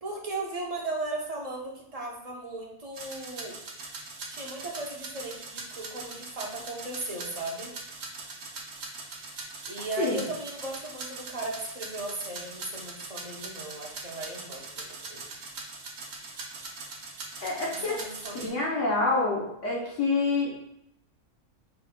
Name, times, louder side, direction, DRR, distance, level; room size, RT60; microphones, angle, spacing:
voice 1, 0.0-3.6 4.3-7.7 9.6-15.3 17.7-18.7, right 2 dB, 35° right, -2 dB, 0.8 m, -37 dB
sound 1, 2.9-18.5, right 3 dB, 60° right, 1.0 m, -41 dB
voice 2, 17.4-17.9 18.4-20.5, left 3 dB, 70° left, -5 dB, 1.3 m, -27 dB
5.4 x 4.0 x 2.2 m, 0.79 s
omnidirectional pair, 1.3 m